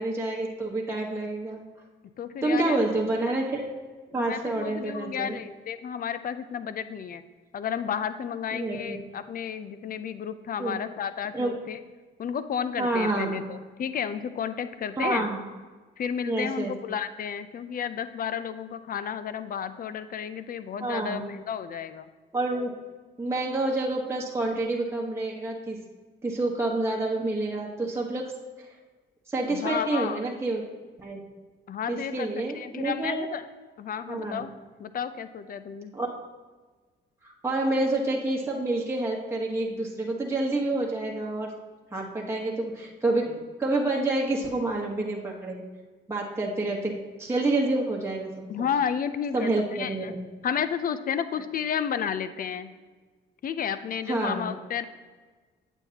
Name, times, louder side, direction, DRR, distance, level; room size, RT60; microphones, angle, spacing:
voice 1, 0.0-1.6 2.4-3.7 4.1-5.4 8.5-9.0 10.6-10.8 11.3-11.5 12.8-13.5 15.0-15.4 16.2-16.7 20.8-21.2 22.3-22.7 23.2-25.8 26.2-28.3 29.3-30.6 31.0-31.2 31.9-33.1 34.1-34.4 35.9-36.1 37.2-41.5 41.9-45.6 46.1-48.3 49.3-50.0 54.1-54.5, right 2 dB, 15° right, -3 dB, 1.3 m, -28 dB
voice 2, 2.2-2.8 4.1-7.2 7.5-11.8 12.2-15.3 16.0-22.1 29.5-30.2 31.7-33.4 33.8-34.5 34.8-35.9 48.5-50.1 50.4-52.7 53.4-54.8, left 8 dB, 45° left, 12 dB, 0.5 m, -32 dB
8.8 x 8.1 x 2.9 m, 1.4 s
cardioid pair, 90°, 20 cm